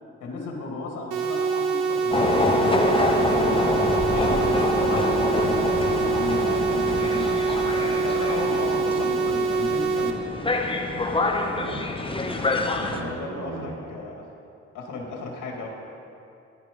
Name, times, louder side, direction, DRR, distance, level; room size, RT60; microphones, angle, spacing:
voice 1, 0.2-5.1 6.1-10.2 12.9-14.3 14.7-15.7, left 3 dB, 75° left, 0 dB, 2.2 m, -34 dB
sound 1, 1.1-10.1, right 4 dB, 85° right, 0.9 m, -25 dB
sound 2, 2.1-13.0, left 2 dB, 15° left, 1.0 m, -26 dB
voice 2, 5.6-5.9 10.9-11.8 12.8-13.7, right 3 dB, 70° right, -4 dB, 1.9 m, -38 dB
11.0 x 9.0 x 5.3 m, 2.6 s
cardioid pair, 90°, 30 cm